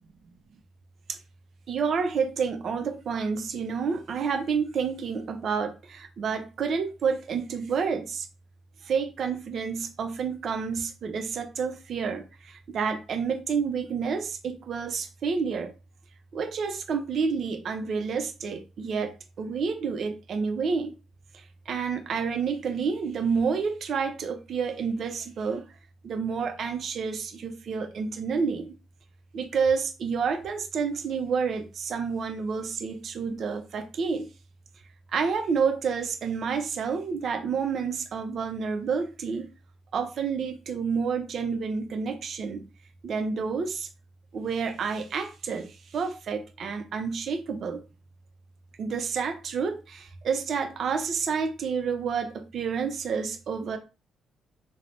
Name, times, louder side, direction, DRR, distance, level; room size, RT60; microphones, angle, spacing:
voice 1, 1.7-8.3 8.8-15.7 16.3-20.9 21.3-25.7 26.0-28.7 29.3-34.3 35.1-39.5 39.9-42.7 43.0-43.9 44.3-47.8 48.8-53.8, right 5 dB, 60° right, 0.4 m, -29 dB
3.2 x 2.0 x 2.5 m
cardioid pair, 90°, 0 cm